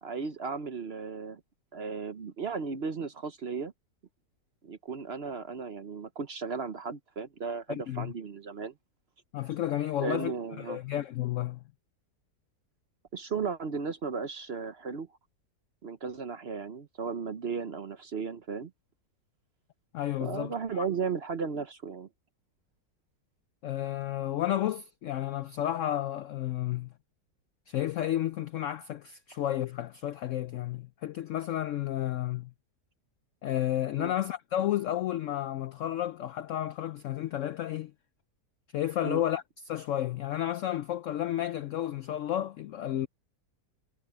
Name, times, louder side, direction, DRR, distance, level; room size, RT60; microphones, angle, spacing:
voice 1, 0.0-1.4 1.7-3.7 4.6-8.7 10.0-10.8 13.1-15.1 15.8-18.7 20.2-22.1 34.0-34.1 39.0-39.2, right 5 dB, 45° right, 0.9 m, -35 dB
voice 2, 7.7-8.1 9.3-11.6 19.9-20.9 23.6-26.9 27.7-32.5 33.4-37.9 38.7-43.1, left 12 dB, 75° left, 0.7 m, -32 dB
omnidirectional pair, 1.8 m